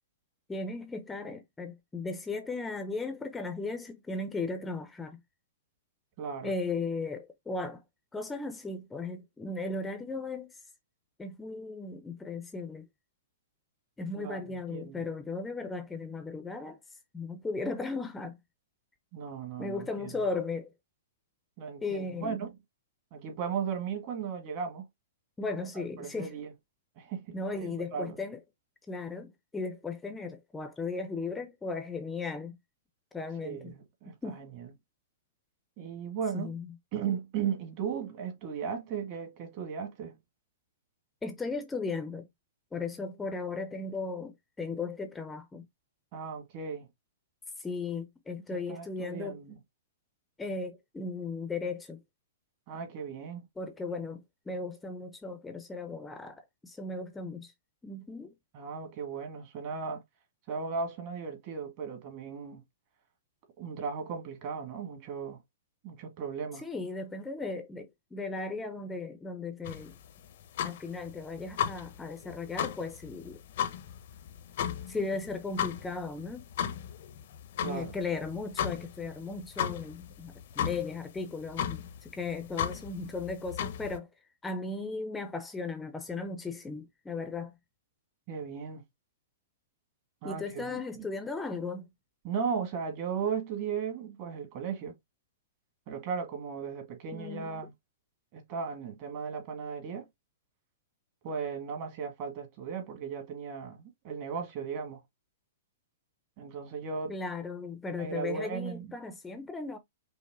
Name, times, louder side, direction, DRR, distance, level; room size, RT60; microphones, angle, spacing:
voice 1, 0.5-5.2 6.4-7.8 8.1-10.6 11.2-12.9 14.0-16.8 17.1-18.4 19.6-20.7 21.8-22.4 25.4-26.3 27.3-28.4 28.9-32.6 33.1-33.7 34.2-34.4 36.3-36.7 41.2-42.3 42.7-45.7 47.6-49.4 50.4-52.0 53.6-57.5 57.8-58.3 66.6-69.9 70.6-73.4 74.9-76.4 77.6-84.1 84.4-87.5 90.2-91.8 97.1-97.6 107.1-109.8, left 3 dB, 10° left, 0.6 m, -36 dB
voice 2, 6.2-6.5 14.1-15.0 19.1-20.1 21.6-22.5 23.1-24.9 25.7-26.5 27.0-28.2 33.4-34.7 35.8-36.6 36.9-40.2 46.1-46.9 48.5-49.6 52.7-53.5 58.5-60.0 60.5-62.6 63.6-65.4 65.8-66.6 77.6-77.9 88.3-88.8 90.2-91.1 92.2-94.9 95.9-97.7 98.3-100.1 101.2-105.0 106.4-107.2 108.0-109.0, right 6 dB, 40° right, 1.6 m, -36 dB
sound 1, 69.6-84.0, left 9 dB, 60° left, 0.7 m, -36 dB
5.3 x 2.1 x 3.5 m
hypercardioid pair, 140°, 0 cm